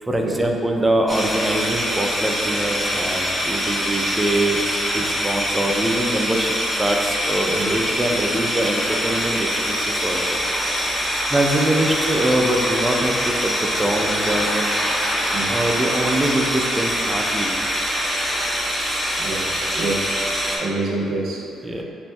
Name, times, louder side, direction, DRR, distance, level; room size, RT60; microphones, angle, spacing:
voice 1, 0.0-10.4 10.9-14.7 15.5-17.5 21.6-21.8, right 1 dB, 15° right, 1 dB, 0.5 m, -23 dB
sound 1, 1.1-20.6, equal, 5° left, 0.9 m, -24 dB
voice 2, 19.2-20.2 20.6-21.5 21.7-21.8, right 2 dB, 70° right, -2 dB, 0.6 m, -27 dB
6.9 x 2.6 x 2.3 m, 2.7 s
cardioid pair, 90°, 0 cm